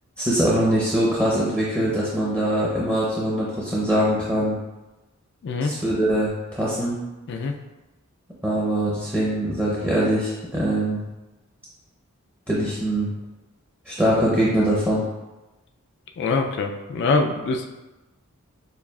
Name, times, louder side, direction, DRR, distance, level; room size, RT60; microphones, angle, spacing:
voice 1, 0.2-4.6 5.6-7.0 8.4-11.0 12.5-13.1 13.9-15.0, right 1 dB, 10° right, -7 dB, 0.7 m, -22 dB
voice 2, 16.2-17.7, left 3 dB, 55° left, 3 dB, 0.4 m, -24 dB
6.8 x 2.4 x 2.3 m, 1.1 s
head